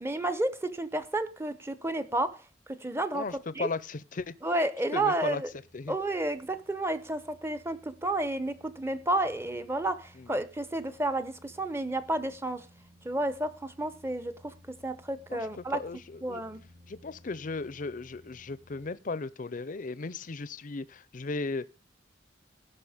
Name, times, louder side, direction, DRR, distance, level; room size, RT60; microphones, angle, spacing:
voice 1, 0.0-3.3 3.5-3.7 4.4-5.5 5.9-12.7 13.0-15.8 16.2-16.6, right 1 dB, 15° right, 0.8 m, -31 dB
voice 2, 3.1-4.3 4.9-5.4 5.7-6.0 10.2-10.3 15.3-16.4 16.9-21.7, left 3 dB, 45° left, 0.6 m, -36 dB
sound 1, 5.4-19.0, left 1 dB, 55° right, 3.1 m, -59 dB
16.5 x 6.0 x 5.0 m
head